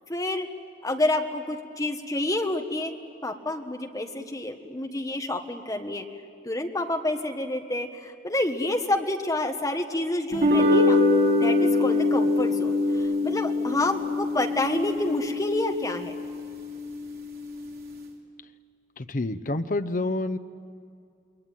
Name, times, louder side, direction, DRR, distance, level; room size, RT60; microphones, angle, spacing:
voice 1, 0.1-0.5 0.8-2.9 3.2-6.0 6.4-11.0 11.3-16.2, left 1 dB, 20° left, 4 dB, 1.5 m, -28 dB
sound 1, 10.3-16.8, left 2 dB, 55° right, 3.3 m, -24 dB
voice 2, 19.0-20.4, left 2 dB, 45° left, 11 dB, 0.8 m, -28 dB
28.5 x 21.5 x 9.1 m, 2.4 s
head